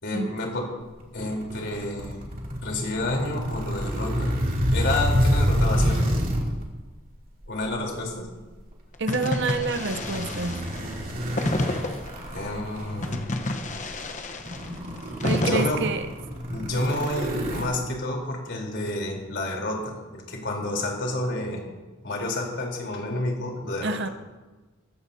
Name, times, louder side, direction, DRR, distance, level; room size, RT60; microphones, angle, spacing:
voice 1, 0.0-0.7 1.1-2.2 2.6-4.4 4.7-6.1 7.5-8.3 12.3-13.3 15.4-15.8 16.5-21.6 22.0-24.0, left 1 dB, 60° left, 0 dB, 3.9 m, -29 dB
sound 1, 1.0-6.6 7.4-7.7 9.6-13.4 13.9-14.0 14.4-17.6, equal, 45° right, 2.8 m, -27 dB
voice 2, 9.0-10.6 15.2-16.1 23.8-24.1, right 3 dB, 60° right, 9 dB, 0.9 m, -27 dB
sound 2, 9.1-12.3 13.0-15.7, left 1 dB, 40° left, 1.0 m, -29 dB
20.0 x 15.5 x 2.8 m, 1.2 s
head